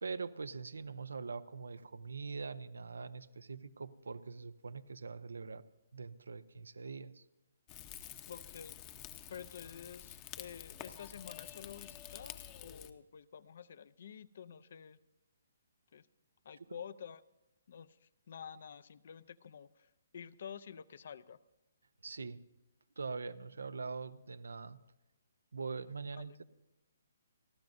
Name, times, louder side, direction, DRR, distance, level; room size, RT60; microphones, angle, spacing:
voice 1, 0.0-5.6 5.9-7.3 22.0-22.4 23.0-24.8 25.5-26.4, right 4 dB, 90° right, 13 dB, 0.7 m, -43 dB
Rain / Fire, 7.7-12.9, left 12 dB, 25° left, 0.8 m, -49 dB
voice 2, 8.3-8.8 9.3-15.0 15.9-16.1 16.4-17.2 17.7-21.4 26.1-26.4, left 7 dB, 60° left, 17 dB, 0.6 m, -50 dB
30.0 x 12.0 x 2.6 m, 1.0 s
hypercardioid pair, 155°, 0 cm